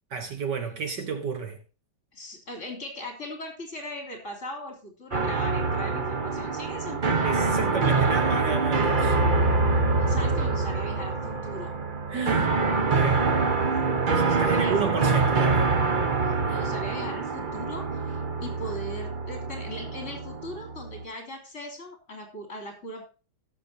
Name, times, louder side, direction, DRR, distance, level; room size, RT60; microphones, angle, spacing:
voice 1, 0.1-1.6 7.2-9.2 12.1-12.5 12.9-13.3 14.3-15.7 16.5-16.6, right 5 dB, 60° right, 1.8 m, -31 dB
voice 2, 2.1-7.4 7.7-8.2 9.7-11.7 14.1-15.1 16.2-23.0, left 1 dB, 35° left, 3.4 m, -39 dB
sound 1, 5.1-21.0, right 4 dB, 40° right, 0.7 m, -25 dB
18.0 x 7.0 x 2.8 m
omnidirectional pair, 2.3 m